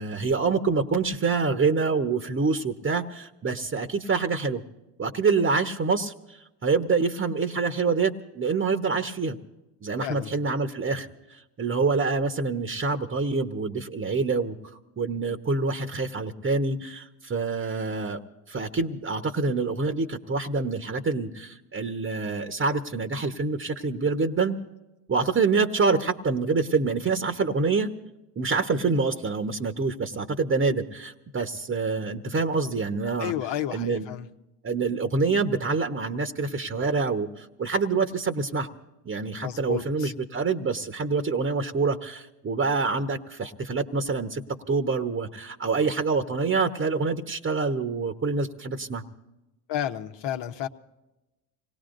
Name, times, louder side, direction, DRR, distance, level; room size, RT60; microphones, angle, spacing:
voice 1, 0.0-4.6 5.0-9.4 9.8-14.6 15.0-18.2 18.5-24.6 25.1-27.9 28.4-33.3 33.7-34.0 34.6-38.7 39.0-49.0, right 4 dB, 25° right, 6 dB, 1.2 m, -26 dB
voice 2, 10.0-10.3 33.2-34.3 39.4-40.1 49.7-50.7, left 11 dB, 60° left, 6 dB, 1.2 m, -31 dB
26.0 x 19.0 x 2.6 m, 1.0 s
supercardioid pair, 80°, 48 cm